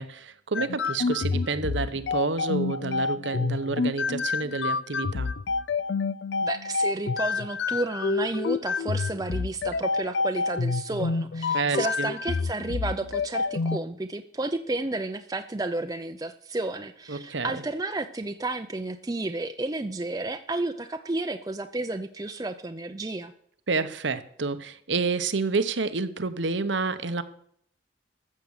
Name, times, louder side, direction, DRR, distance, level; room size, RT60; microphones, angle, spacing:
voice 1, 0.0-5.3 11.5-12.1 17.1-17.6 23.7-27.2, right 4 dB, 80° right, 11 dB, 1.0 m, -29 dB
sound 1, 0.5-13.8, left 4 dB, 70° left, 0.5 m, -28 dB
voice 2, 6.4-23.3, right 2 dB, 20° right, 6 dB, 0.6 m, -32 dB
14.0 x 7.5 x 6.6 m, 0.67 s
head